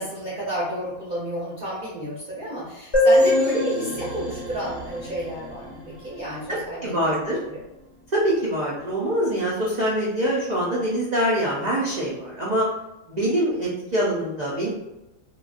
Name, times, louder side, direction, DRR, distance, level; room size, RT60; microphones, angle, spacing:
voice 1, 0.0-5.8 6.0-7.1, right 1 dB, 45° right, -8 dB, 0.7 m, -31 dB
sound 1, 2.9-6.5, left 1 dB, 20° left, 0.6 m, -23 dB
voice 2, 6.5-7.4 8.1-12.7 13.1-14.7, right 1 dB, 80° right, -5 dB, 0.3 m, -24 dB
3.0 x 2.3 x 2.4 m, 0.95 s
omnidirectional pair, 1.5 m